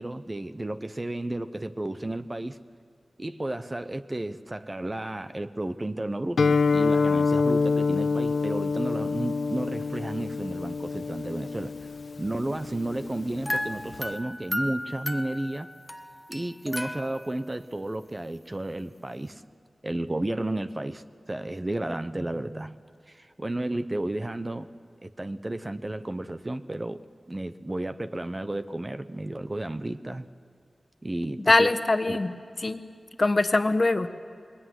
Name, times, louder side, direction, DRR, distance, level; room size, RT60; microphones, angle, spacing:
voice 1, 0.0-2.6 3.2-11.7 12.2-15.7 16.3-19.4 19.8-22.8 23.1-24.7 25.0-30.3 31.0-31.7 32.1-32.2, right 1 dB, 25° right, 10 dB, 0.9 m, -32 dB
Guitar, 6.4-14.1, left 4 dB, 90° left, 1.0 m, -27 dB
sound 1, 13.5-17.6, left 1 dB, 10° left, 0.8 m, -34 dB
voice 2, 31.5-32.3 32.6-32.8 33.2-34.1, left 2 dB, 40° left, 8 dB, 1.4 m, -22 dB
26.5 x 22.0 x 9.6 m, 2.4 s
wide cardioid pair, 80°, 0 cm